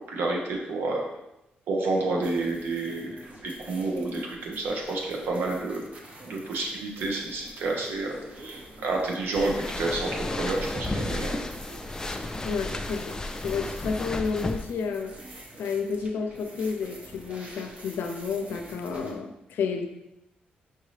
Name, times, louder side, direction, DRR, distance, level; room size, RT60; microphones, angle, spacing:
voice 1, 0.1-1.0 1.7-5.8 6.2-11.4, right 2 dB, 85° right, 0 dB, 0.9 m, -29 dB
sound 1, 2.2-19.1, right 1 dB, 40° right, 0.8 m, -47 dB
sound 2, 9.4-14.7, left 2 dB, 20° left, 0.3 m, -33 dB
voice 2, 12.4-13.1 13.4-15.1 15.6-19.9, left 5 dB, 85° left, 4 dB, 0.5 m, -30 dB
5.2 x 2.8 x 3.2 m, 0.90 s
cardioid pair, 100°, 3 cm